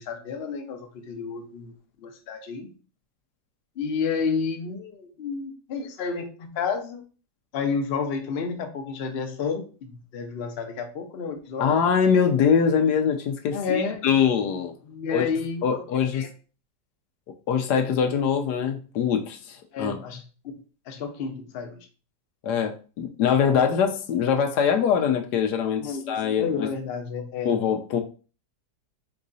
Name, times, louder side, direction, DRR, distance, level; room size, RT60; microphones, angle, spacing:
voice 1, 0.0-1.7 2.0-2.7 3.8-7.0 7.5-11.7 13.5-14.1 14.8-15.8 16.1-16.3 19.7-20.6 20.9-21.8 25.8-27.6, left 5 dB, 50° left, 5 dB, 0.8 m, -31 dB
voice 2, 11.6-14.7 15.1-15.2 15.6-16.2 17.5-20.0 22.4-26.7 27.4-28.0, left 7 dB, 75° left, 5 dB, 1.2 m, -23 dB
4.6 x 4.0 x 2.6 m, 0.36 s
omnidirectional pair, 1.8 m